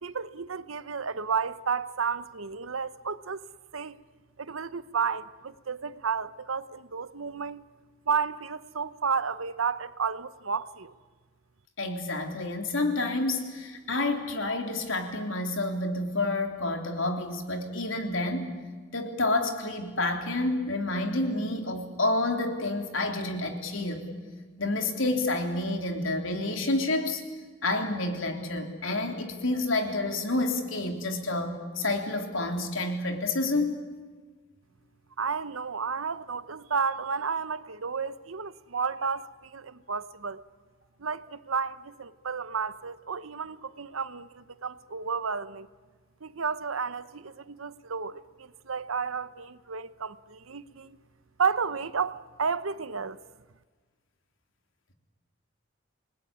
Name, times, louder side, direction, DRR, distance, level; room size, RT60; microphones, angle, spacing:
voice 1, 0.0-3.4 3.7-4.0 4.4-7.6 8.1-10.9 35.2-40.4 41.0-45.7 46.2-51.0 51.4-53.2, right 5 dB, 90° right, 0.9 m, -32 dB
voice 2, 11.8-18.6 18.9-24.0 24.6-27.2 27.6-33.7, left 2 dB, 75° left, 3.5 m, -29 dB
29.0 x 20.0 x 9.9 m
head